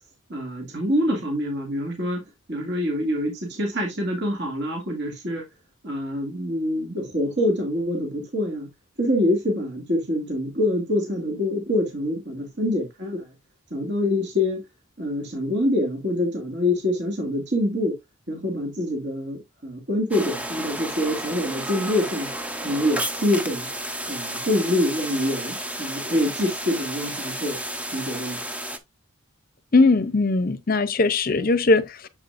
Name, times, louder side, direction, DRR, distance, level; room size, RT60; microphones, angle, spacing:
voice 1, 0.3-2.2 2.5-5.4 5.8-8.7 9.0-13.3 13.7-14.6 15.0-17.9 18.3-22.3 22.6-23.7 24.1-27.6 27.9-28.4, left 1 dB, 50° right, 2.1 m, -25 dB
sound 1, 20.1-28.8, right 1 dB, 5° right, 0.5 m, -32 dB
voice 2, 29.7-32.1, left 3 dB, 40° left, 0.7 m, -20 dB
7.1 x 6.9 x 2.5 m
head